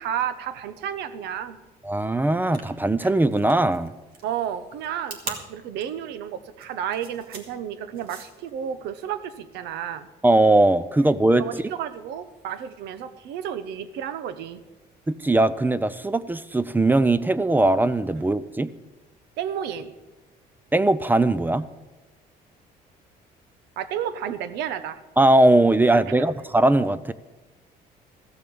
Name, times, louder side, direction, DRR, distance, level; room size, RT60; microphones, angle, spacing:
voice 1, 0.0-1.6 4.2-10.1 11.4-14.6 19.4-19.9 23.8-25.0, right 9 dB, 85° right, 13 dB, 0.9 m, -31 dB
voice 2, 1.8-3.9 10.2-11.6 15.1-18.7 20.7-21.6 25.2-27.1, right 2 dB, 10° right, 15 dB, 0.4 m, -20 dB
sound 1, 2.4-8.5, right 4 dB, 60° right, 2.2 m, -40 dB
14.5 x 7.0 x 6.9 m, 1.2 s
cardioid pair, 110°, 17 cm